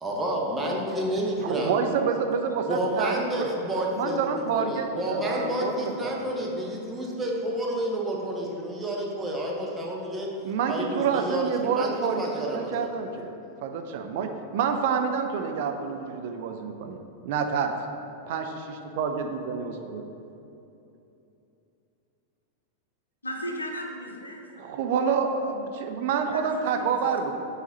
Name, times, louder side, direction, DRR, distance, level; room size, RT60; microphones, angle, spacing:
voice 1, 0.0-1.8 2.7-10.3 10.7-12.9, right 1 dB, 10° right, -2 dB, 1.0 m, -30 dB
voice 2, 1.4-3.5 3.9-6.2 10.4-13.3 13.6-17.7 18.3-20.0 24.6-27.4, right 6 dB, 50° right, 5 dB, 0.4 m, -28 dB
voice 3, 23.2-24.7 25.1-25.2 26.1-26.5 26.7-27.0, equal, 80° left, 2 dB, 0.7 m, -36 dB
7.1 x 4.0 x 4.0 m, 2.8 s
figure-of-eight pair, 90°, 0 cm